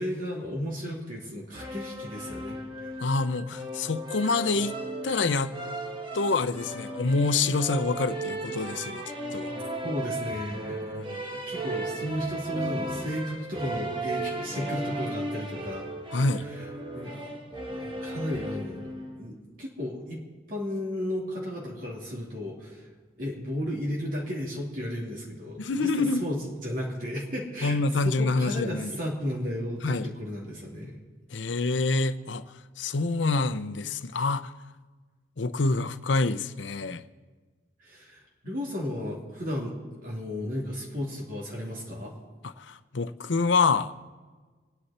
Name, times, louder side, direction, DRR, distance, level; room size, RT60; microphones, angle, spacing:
voice 1, 0.0-2.9 9.8-11.0 11.3-15.9 16.4-16.7 16.9-18.9 19.2-20.2 20.5-22.9 23.2-31.0 37.8-42.1, left 1 dB, 50° right, -3 dB, 2.8 m, -34 dB
sound 1, 1.5-19.2, right 2 dB, 30° right, 1.4 m, -36 dB
voice 2, 3.0-4.8 5.0-5.5 6.1-9.0 9.3-9.5 10.9-11.2 16.1-16.5 25.6-26.2 27.6-28.9 29.8-30.1 31.3-32.4 32.8-34.5 35.4-37.0 42.6-43.9, left 3 dB, 80° left, 13 dB, 0.7 m, -26 dB
28.0 x 9.8 x 4.3 m, 1.4 s
head